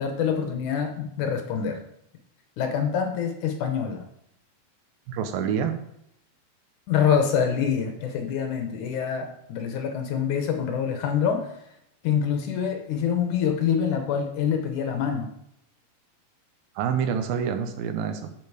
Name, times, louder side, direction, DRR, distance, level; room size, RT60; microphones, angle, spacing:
voice 1, 0.0-1.8 2.6-4.0 6.9-11.5 12.0-15.3, left 7 dB, 70° left, 5 dB, 2.2 m, -25 dB
voice 2, 5.1-5.8 16.8-18.3, right 7 dB, 80° right, 8 dB, 2.6 m, -27 dB
7.6 x 7.3 x 4.8 m, 0.76 s
omnidirectional pair, 4.0 m